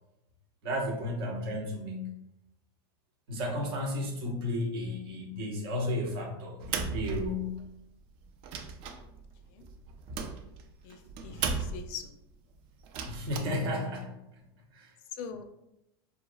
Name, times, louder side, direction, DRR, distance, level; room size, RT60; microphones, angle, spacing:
voice 1, 0.6-2.1 3.3-7.6 11.3-11.4 13.1-14.1 14.7-14.9, left 1 dB, 75° right, 0 dB, 0.8 m, -33 dB
sound 1, 6.6-7.8 8.2-12.1 12.8-13.4, right 5 dB, 45° right, 0.4 m, -36 dB
voice 2, 10.8-12.1 15.2-15.4, left 7 dB, 55° left, 7 dB, 0.4 m, -42 dB
2.8 x 2.3 x 2.3 m, 0.84 s
supercardioid pair, 120°, 13 cm